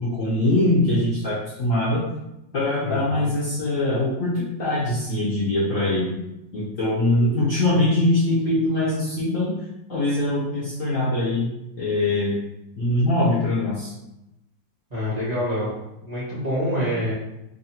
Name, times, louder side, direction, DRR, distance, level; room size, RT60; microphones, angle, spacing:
voice 1, 0.0-2.1 2.5-6.1 6.5-9.5 9.9-11.5 11.8-12.4 12.8-13.9, left 1 dB, 55° left, -7 dB, 1.0 m, -22 dB
voice 2, 2.8-3.3 14.9-15.7 16.1-17.1, equal, 25° right, -10 dB, 1.1 m, -26 dB
3.2 x 2.6 x 4.2 m, 0.89 s
omnidirectional pair, 2.0 m